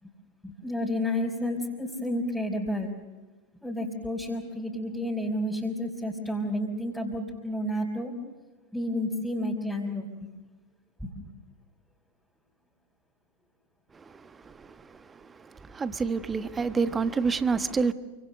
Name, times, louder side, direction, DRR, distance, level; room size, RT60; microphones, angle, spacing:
voice 1, 0.4-2.9 3.6-8.1 8.7-10.3 11.0-11.2, left 1 dB, ahead, 3.8 m, -31 dB
voice 2, 13.9-17.9, right 5 dB, 15° right, 1.2 m, -29 dB
28.5 x 25.0 x 6.5 m
figure-of-eight pair, 90°, 0 cm